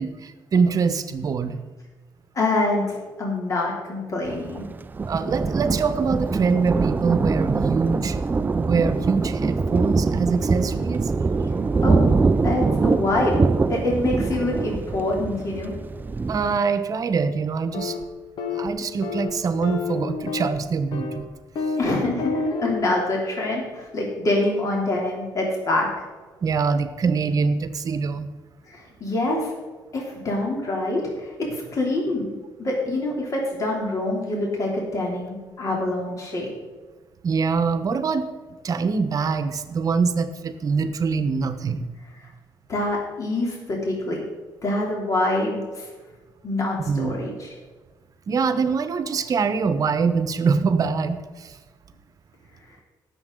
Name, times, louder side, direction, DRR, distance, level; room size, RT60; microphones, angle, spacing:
voice 1, 0.0-1.6 5.0-8.2 8.5-11.1 16.3-18.0 18.5-21.3 26.4-28.3 37.2-38.3 38.6-41.9 46.8-47.2 48.3-51.6, right 5 dB, 45° right, 10 dB, 1.0 m, -24 dB
voice 2, 2.3-4.7 11.8-12.2 12.4-13.4 13.7-15.7 21.8-25.9 28.7-29.5 29.9-32.3 32.6-36.5 42.7-44.2 44.6-45.9 46.4-47.5, left 2 dB, 45° left, -2 dB, 3.0 m, -25 dB
Thunder, 4.2-16.6, right 4 dB, 25° right, 0.4 m, -23 dB
sound 1, 17.7-18.0 18.4-18.7 19.0-19.3 19.6-20.6 20.9-21.2 21.5-21.9 22.2-22.8, left 4 dB, 70° left, 1.3 m, -28 dB
17.5 x 7.4 x 3.9 m, 1.3 s
cardioid pair, 95°, 8 cm